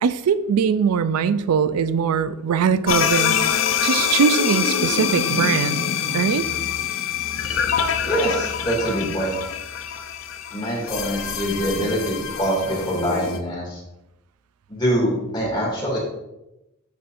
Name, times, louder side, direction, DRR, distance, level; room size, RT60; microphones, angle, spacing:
voice 1, 0.0-3.4 3.8-5.8 6.1-6.5, right 6 dB, 90° right, 13 dB, 0.4 m, -21 dB
sound 1, 2.9-13.4, left 7 dB, 60° left, 0.5 m, -25 dB
voice 2, 8.0-9.4 10.5-13.8 14.7-16.0, right 1 dB, 20° left, -4 dB, 2.4 m, -24 dB
11.5 x 4.2 x 2.6 m, 0.93 s
head